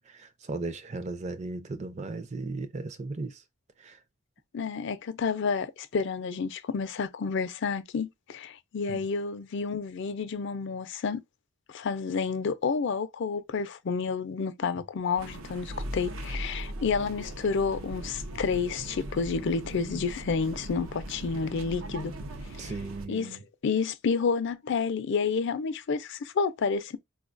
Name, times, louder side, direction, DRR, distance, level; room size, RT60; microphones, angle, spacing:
voice 1, 0.0-3.4 3.8-4.0 8.9-9.0 22.6-23.4, right 3 dB, 35° right, 0.5 m, -36 dB
voice 2, 4.5-11.2 11.7-22.1 22.6-22.7 23.1-27.0, left 5 dB, 60° left, 0.4 m, -30 dB
sound 1, 15.2-23.1, right 1 dB, 80° right, 0.6 m, -39 dB
4.4 x 2.3 x 2.5 m
head